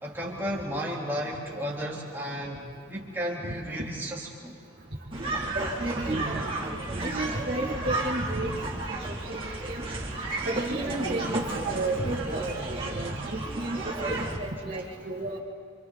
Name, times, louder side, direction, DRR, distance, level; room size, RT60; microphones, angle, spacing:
voice 1, 0.0-2.6 2.9-4.6, equal, 10° right, -5 dB, 3.4 m, -33 dB
sound 1, 5.1-14.4, right 2 dB, 25° right, 2.6 m, -32 dB
voice 2, 5.5-6.2 7.0-8.5 8.9-9.8 10.4-11.4 11.6-15.4, right 2 dB, 50° right, -7 dB, 2.5 m, -33 dB
29.0 x 26.5 x 4.1 m, 2.2 s
head